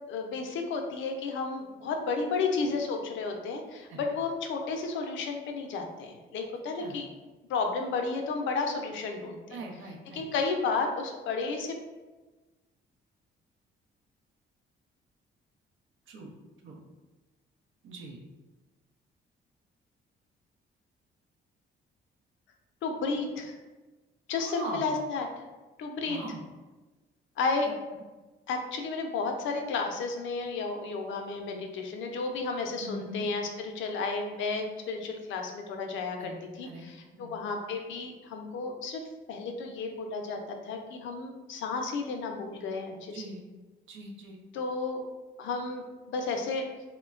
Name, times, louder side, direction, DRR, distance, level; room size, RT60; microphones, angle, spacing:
voice 1, 0.1-7.1 7.5-9.6 10.1-11.7 22.8-23.6 24.3-25.5 25.8-26.2 27.4-27.7 28.5-36.3 36.6-43.2 44.5-45.1 45.4-46.7, left 4 dB, 75° left, 3 dB, 0.5 m, -32 dB
voice 2, 9.5-10.3 16.1-16.3 16.6-16.8 17.8-18.2 24.4-24.9 26.1-26.4 32.8-33.3 36.2-36.9 37.1-37.3 43.1-43.4 43.9-44.4, right 1 dB, 75° right, 1 dB, 0.6 m, -41 dB
3.0 x 2.1 x 2.4 m, 1.2 s
cardioid pair, 90°, 20 cm